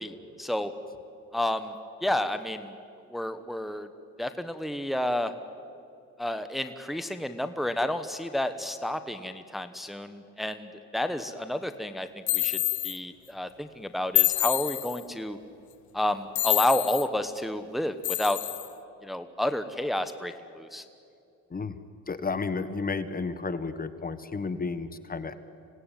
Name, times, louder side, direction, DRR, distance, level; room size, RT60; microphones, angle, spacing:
voice 1, 0.0-0.7 1.3-1.7 2.0-2.7 3.1-3.9 4.2-5.3 6.2-15.4 15.9-18.4 19.0-20.8, left 1 dB, ahead, 9 dB, 1.1 m, -30 dB
sound 1, 12.3-13.0 14.1-15.0 16.3-17.1 18.0-18.7, left 16 dB, 70° left, 0.8 m, -26 dB
voice 2, 22.1-25.4, left 4 dB, 30° left, 11 dB, 1.3 m, -32 dB
26.0 x 17.5 x 9.2 m, 2.5 s
cardioid pair, 90°, 30 cm